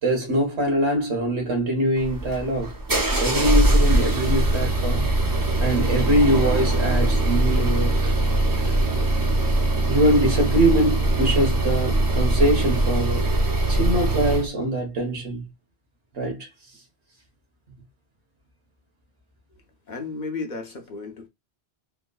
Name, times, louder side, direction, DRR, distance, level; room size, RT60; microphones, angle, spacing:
voice 1, 0.0-2.7 3.2-5.1 5.6-8.8 9.9-13.3 13.7-15.5 16.1-16.5, right 1 dB, 90° right, 1.5 m, -23 dB
sound 1, 2.0-14.5, right 1 dB, 25° right, 0.4 m, -21 dB
voice 2, 19.9-21.3, left 4 dB, 50° left, 0.7 m, -33 dB
3.7 x 2.5 x 2.2 m
omnidirectional pair, 1.1 m